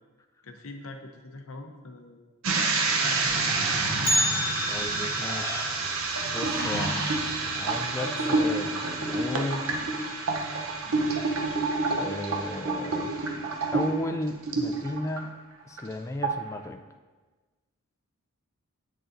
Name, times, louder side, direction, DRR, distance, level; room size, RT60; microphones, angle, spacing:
voice 1, 0.4-2.3 2.9-3.7 10.8-11.1, left 2 dB, 65° left, 5 dB, 0.7 m, -44 dB
sound 1, 2.4-15.2 15.6-15.9 16.2-16.6, right 3 dB, 65° right, 0.7 m, -28 dB
sound 2, 3.0-9.1, right 1 dB, 45° right, 1.2 m, -39 dB
Bell, 4.0-8.1 8.4-8.5 9.0-9.1 9.9-10.0 10.8-11.0 11.4-11.5, left 1 dB, 40° left, 1.1 m, -32 dB
voice 2, 4.7-5.8 6.2-7.1 7.5-9.6 12.0-13.1 13.7-16.8, left 1 dB, 15° left, 6 dB, 0.3 m, -34 dB
8.0 x 6.3 x 2.5 m, 1.3 s
head